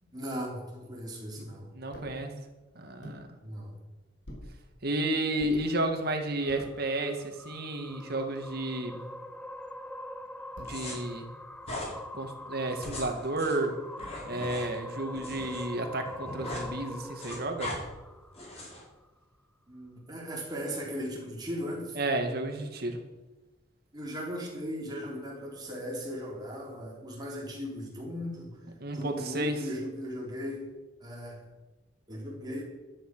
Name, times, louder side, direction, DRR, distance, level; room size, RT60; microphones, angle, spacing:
voice 1, 0.0-1.7 3.4-3.8 19.7-22.0 23.9-28.6 28.9-30.7 31.0-31.4 32.1-32.6, equal, 20° right, -2 dB, 3.8 m, -37 dB
voice 2, 1.7-2.3 2.7-3.3 4.8-9.0 10.6-11.3 12.1-13.8 14.3-17.7 22.0-23.0 28.8-29.6, right 2 dB, 55° right, 4 dB, 2.1 m, -32 dB
sound 1, 1.9-2.2 3.0-3.2 4.2-4.5 5.4-5.6 6.3-6.7 7.4-7.5 7.7-8.7 10.5-10.9 11.6-12.0 12.8-13.2 14.0-14.4 15.1-15.5 16.5-16.8 17.7-18.2, equal, 75° left, 4.0 m, -46 dB
sound 2, 6.4-18.9, left 1 dB, 5° left, 0.6 m, -44 dB
sound 3, 10.6-10.9 11.6-11.9 12.7-15.6 15.9-16.7 17.0-17.8 18.3-18.8, left 1 dB, 35° left, 4.8 m, -40 dB
12.5 x 11.5 x 6.3 m, 1.1 s
head